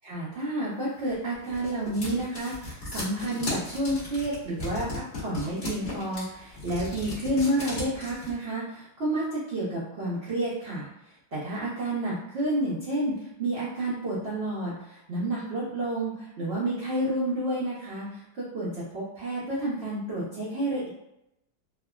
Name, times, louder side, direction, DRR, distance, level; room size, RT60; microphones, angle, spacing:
voice 1, 0.0-10.9 11.3-20.9, right 1 dB, 65° right, -8 dB, 0.6 m, -30 dB
sound 1, 1.1-8.3, left 2 dB, 35° left, 1.0 m, -36 dB
3.3 x 2.1 x 2.3 m, 0.83 s
omnidirectional pair, 1.9 m